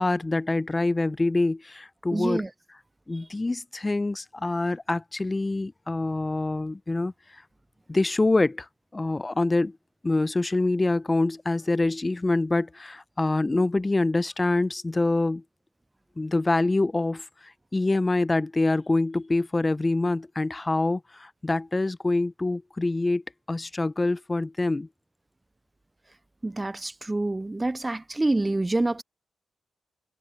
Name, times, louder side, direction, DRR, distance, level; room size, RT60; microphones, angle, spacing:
voice 1, 0.0-2.4 3.1-7.4 7.9-9.8 10.0-15.4 16.2-23.2 23.5-24.9, left 2 dB, 25° left, 0.6 m, -25 dB
voice 2, 2.1-2.5 3.2-3.3 26.4-29.0, right 2 dB, 20° right, 0.4 m, -27 dB
supercardioid pair, 50°, 0 cm